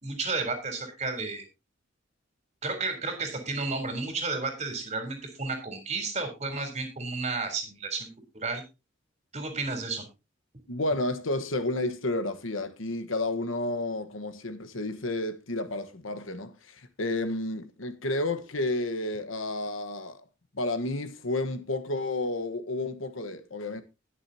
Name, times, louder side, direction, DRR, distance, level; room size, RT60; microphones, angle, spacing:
voice 1, 0.0-1.4 2.6-8.1 8.3-8.6 9.3-10.0, right 3 dB, 35° right, 3.7 m, -32 dB
voice 2, 10.7-20.2 20.5-23.8, left 2 dB, 85° left, 1.3 m, -31 dB
20.0 x 6.9 x 2.8 m
head